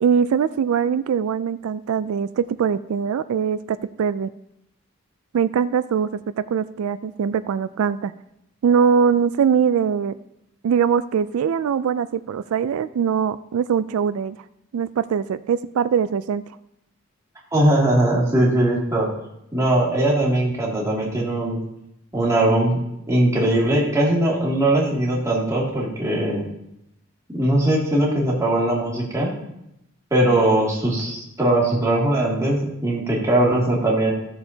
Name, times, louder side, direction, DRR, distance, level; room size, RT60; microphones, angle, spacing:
voice 1, 0.0-4.3 5.3-6.1 6.4-8.1 8.6-10.1 10.6-14.4 14.7-16.4, right 7 dB, 85° right, 14 dB, 0.3 m, -22 dB
voice 2, 17.5-19.1 19.5-21.6 22.1-22.8 23.1-26.4 27.3-29.3 30.1-34.1, right 1 dB, 15° right, -5 dB, 2.4 m, -20 dB
15.0 x 7.0 x 2.8 m, 0.82 s
head